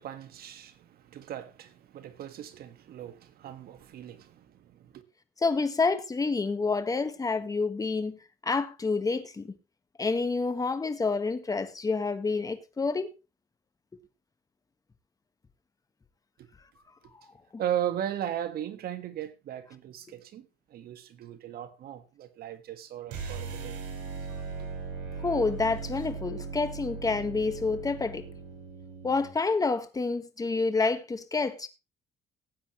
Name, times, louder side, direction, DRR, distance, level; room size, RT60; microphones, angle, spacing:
voice 1, 0.0-5.0 17.6-23.8, right 10 dB, 65° right, 1.7 m, -37 dB
voice 2, 5.4-8.2 8.4-9.6 10.0-13.1 25.2-28.3 29.0-31.7, left 4 dB, 20° left, 1.5 m, -28 dB
sound 1, 23.1-29.3, right 5 dB, 85° right, 5.9 m, -38 dB
18.0 x 8.6 x 3.1 m
cardioid pair, 110°, 17 cm